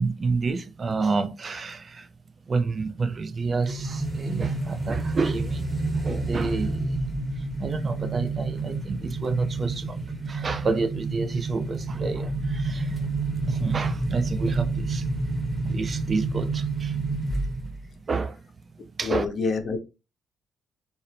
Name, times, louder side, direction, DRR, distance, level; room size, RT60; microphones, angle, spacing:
voice 1, 0.0-2.1 2.5-7.0 7.4-13.1 13.4-15.1 15.6-17.0 17.6-17.7 18.0-18.4 18.8-19.3, right 4 dB, 40° right, 0.3 m, -29 dB
sound 1, 3.6-17.9, right 3 dB, 15° right, 0.8 m, -29 dB
voice 2, 19.0-19.8, left 4 dB, 50° left, 0.5 m, -26 dB
2.6 x 2.0 x 2.8 m
cardioid pair, 90°, 0 cm